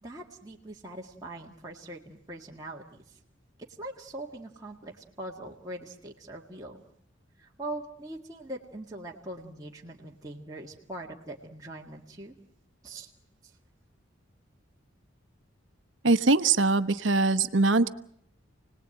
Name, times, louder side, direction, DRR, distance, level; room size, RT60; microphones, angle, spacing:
voice 1, 0.0-3.2 3.8-6.8 7.4-12.3 12.8-13.1 13.4-13.5, right 1 dB, 20° right, -3 dB, 2.0 m, -42 dB
voice 2, 16.0-17.9, right 3 dB, 70° right, 11 dB, 1.1 m, -22 dB
29.5 x 19.5 x 9.0 m, 0.72 s
head